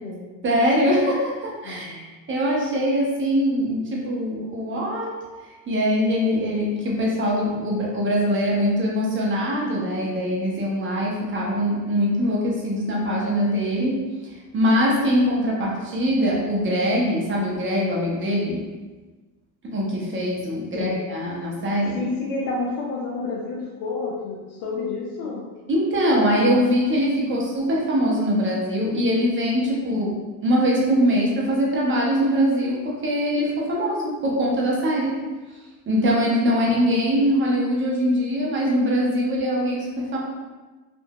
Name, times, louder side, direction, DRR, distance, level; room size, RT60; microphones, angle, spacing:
voice 1, 0.4-5.1 5.7-14.0 14.5-18.6 19.6-22.0 25.7-30.1 30.4-35.2 35.9-40.2, equal, 30° right, -4 dB, 0.8 m, -22 dB
voice 2, 1.6-2.1 20.7-21.0 21.9-25.4 27.3-27.5 29.9-30.1, left 3 dB, 85° left, -4 dB, 0.7 m, -30 dB
3.7 x 2.5 x 2.3 m, 1.3 s
cardioid pair, 120°, 42 cm